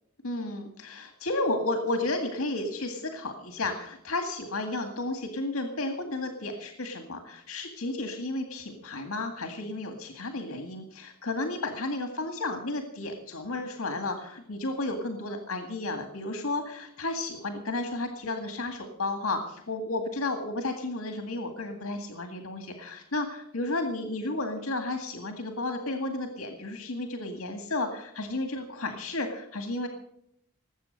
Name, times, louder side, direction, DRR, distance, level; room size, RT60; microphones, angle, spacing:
voice 1, 0.2-29.9, left 2 dB, 80° left, 6 dB, 2.0 m, -32 dB
19.5 x 8.2 x 6.6 m, 0.73 s
head